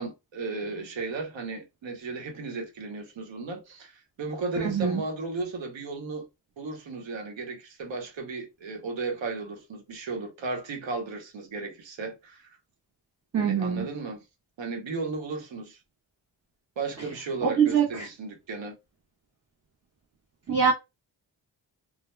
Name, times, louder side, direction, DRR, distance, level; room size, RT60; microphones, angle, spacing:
voice 1, 0.0-6.3 6.6-12.5 13.4-14.2 14.6-15.8 16.8-18.8, right 3 dB, 80° right, 1.0 m, -35 dB
voice 2, 4.6-5.0 13.3-13.9 17.4-18.1 20.5-20.7, right 7 dB, 35° right, 0.7 m, -23 dB
2.2 x 2.2 x 3.0 m
cardioid pair, 70°, 44 cm